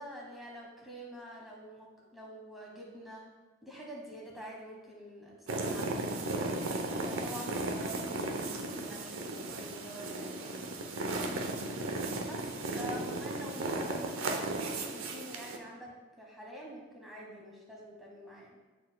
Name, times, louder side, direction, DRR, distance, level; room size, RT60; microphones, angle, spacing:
voice 1, 0.0-3.3 3.6-6.1 7.0-11.5 12.2-18.6, equal, ahead, -4 dB, 1.2 m, -47 dB
sound 1, 5.5-15.6, right 2 dB, 85° right, 0.7 m, -35 dB
11.0 x 4.1 x 2.2 m, 1.2 s
head